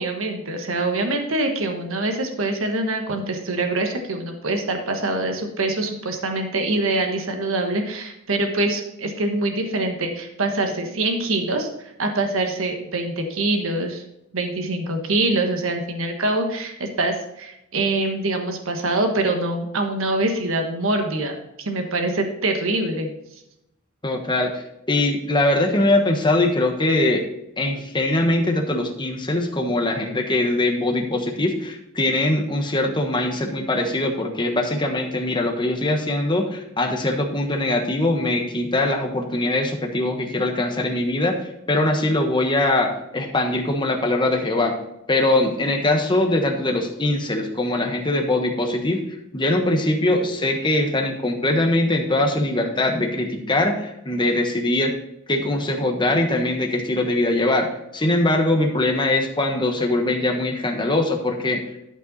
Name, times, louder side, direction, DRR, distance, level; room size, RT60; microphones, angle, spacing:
voice 1, 0.0-14.0 14.3-23.1, right 2 dB, 70° right, 4 dB, 1.3 m, -24 dB
voice 2, 24.0-27.2 27.6-41.4 41.7-44.7 45.1-49.0 49.3-54.9 55.3-61.6, left 2 dB, 20° left, 3 dB, 1.2 m, -22 dB
12.5 x 5.4 x 4.1 m, 0.83 s
head